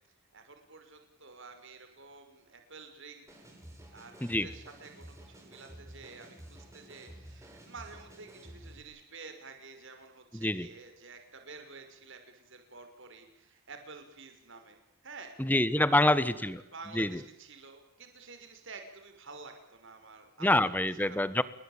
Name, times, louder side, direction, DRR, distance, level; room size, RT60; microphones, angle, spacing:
voice 1, 0.3-3.3 3.9-14.8 15.0-15.5 15.9-16.3 16.7-20.5 21.1-21.2, right 4 dB, 55° right, 6 dB, 6.0 m, -50 dB
sound 1, 3.3-8.8, right 1 dB, 15° right, 6.5 m, -51 dB
voice 2, 10.3-10.7 15.4-16.6 16.9-17.2 20.4-21.4, left 1 dB, 10° left, 15 dB, 1.3 m, -26 dB
30.0 x 22.0 x 9.0 m, 0.73 s
head